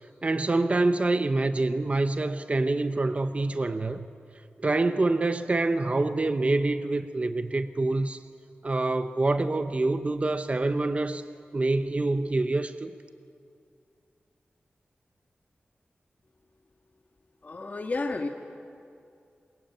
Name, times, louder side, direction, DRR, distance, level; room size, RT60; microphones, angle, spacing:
voice 1, 0.2-4.1 4.6-8.2 8.6-11.2 11.5-12.9, right 2 dB, 35° right, 10 dB, 0.9 m, -26 dB
voice 2, 17.4-18.3, left 3 dB, 40° left, 3 dB, 1.6 m, -31 dB
28.0 x 23.0 x 9.1 m, 2.4 s
wide cardioid pair, 115°, 4 cm